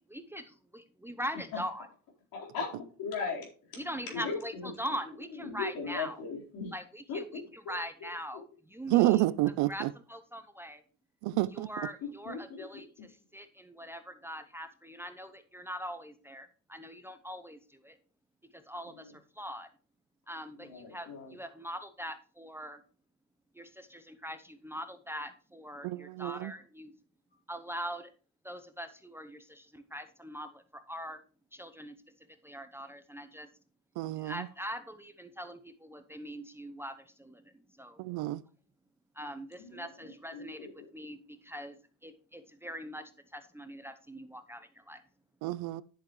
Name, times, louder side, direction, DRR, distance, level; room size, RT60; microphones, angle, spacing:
voice 1, 0.1-1.9 3.8-6.2 6.7-9.2 9.7-10.8 11.5-18.0 18.5-19.7 20.3-22.8 23.5-26.9 27.5-28.1 28.4-31.2 31.5-31.9 32.4-33.5 34.2-38.0 39.2-40.7 40.9-41.8 42.0-45.0, equal, 5° right, 0.7 m, -42 dB
voice 2, 2.3-4.7 5.4-6.7 7.1-7.8 12.0-13.1 18.9-19.1 20.6-21.4 39.6-40.7, left 5 dB, 70° left, 4.3 m, -39 dB
voice 3, 8.9-9.9 11.2-11.7 25.8-26.5 34.0-34.5 38.0-38.4 45.4-45.8, right 17 dB, 80° right, 0.6 m, -29 dB
10.5 x 7.3 x 3.1 m
cardioid pair, 110°, 36 cm